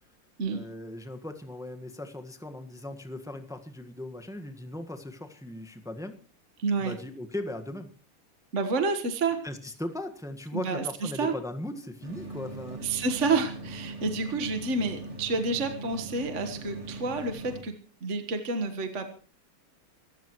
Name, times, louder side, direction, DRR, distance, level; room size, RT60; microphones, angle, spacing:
voice 1, 0.5-6.2 6.8-7.9 9.4-12.8, left 1 dB, ahead, 6 dB, 1.1 m, -38 dB
voice 2, 6.6-7.0 8.5-9.4 10.5-11.3 12.8-17.7 18.0-19.1, right 3 dB, 35° right, 6 dB, 1.6 m, -29 dB
sound 1, 12.0-17.6, right 2 dB, 80° right, 6.2 m, -40 dB
26.0 x 14.5 x 3.1 m, 0.38 s
omnidirectional pair, 2.4 m